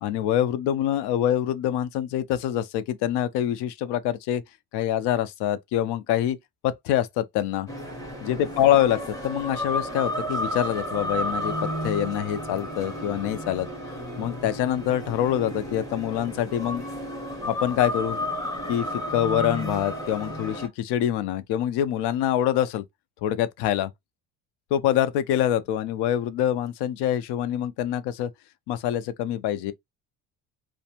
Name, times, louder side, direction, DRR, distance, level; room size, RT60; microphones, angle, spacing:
voice 1, 0.0-4.4 4.7-6.4 6.6-7.7 8.2-11.5 11.8-13.7 14.2-16.8 17.4-18.3 18.7-22.8 23.2-23.9 24.7-28.3 28.7-29.7, left 11 dB, 70° left, 0.5 m, -25 dB
sound 1, 7.7-20.7, equal, 10° left, 0.6 m, -32 dB
2.6 x 2.1 x 2.8 m
cardioid pair, 170°, 42 cm